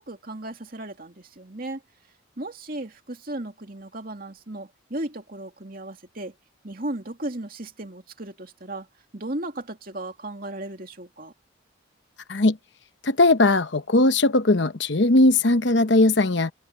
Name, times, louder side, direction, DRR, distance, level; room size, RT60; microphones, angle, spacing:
voice 1, 0.0-1.8 2.4-6.3 6.6-8.9 9.1-11.3, right 1 dB, 45° right, 2.4 m, -35 dB
voice 2, 13.0-16.5, left 2 dB, 60° left, 1.0 m, -19 dB
open air
head